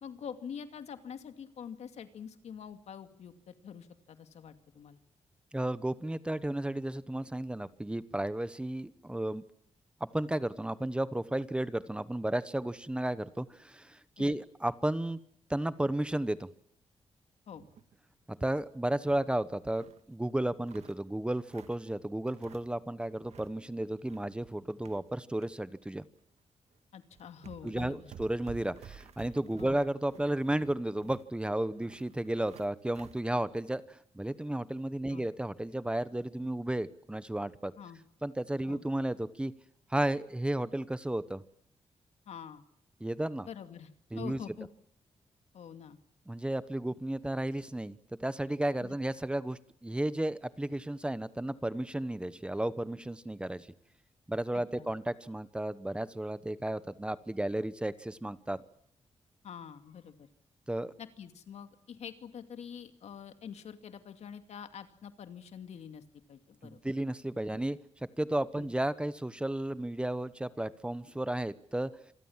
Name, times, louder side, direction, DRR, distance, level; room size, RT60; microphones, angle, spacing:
voice 1, 0.0-5.0 14.2-14.4 17.5-17.6 26.9-28.1 29.6-29.7 35.1-35.3 37.8-38.0 38.7-38.8 42.3-42.6 43.4-43.9 44.2-44.7 45.5-46.0 48.8-49.0 54.5-54.9 59.4-60.3 61.0-66.0 66.3-66.8 68.5-68.7, left 7 dB, 85° left, 8 dB, 2.5 m, -46 dB
voice 2, 5.5-9.4 10.0-15.2 15.5-16.5 18.3-26.0 27.6-37.7 38.2-39.5 39.9-41.4 43.0-43.5 44.1-44.4 46.3-53.7 54.3-58.6 60.7-60.9 66.6-67.8 68.2-71.9, right 1 dB, 10° right, 15 dB, 1.0 m, -33 dB
sound 1, 17.5-18.0 18.3-18.4 18.7-20.0 20.4-21.9 22.3-22.9 23.1-23.6 23.9-25.5 25.9-26.0 26.7-26.8 27.1-33.2, right 8 dB, 85° right, 1.8 m, -53 dB
27.5 x 22.5 x 7.4 m, 0.67 s
wide cardioid pair, 140°, 11 cm